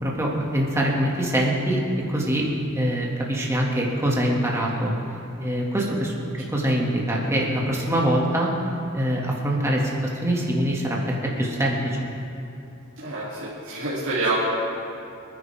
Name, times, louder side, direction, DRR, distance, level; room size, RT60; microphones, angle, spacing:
voice 1, 0.0-1.8 2.1-2.5 2.8-4.9 5.4-6.1 6.5-8.5 8.9-9.9 10.2-11.0 11.4-12.1, right 1 dB, 15° right, -3 dB, 2.1 m, -23 dB
voice 2, 13.0-14.4, right 2 dB, 60° right, -10 dB, 2.8 m, -27 dB
27.0 x 10.0 x 3.6 m, 2.6 s
head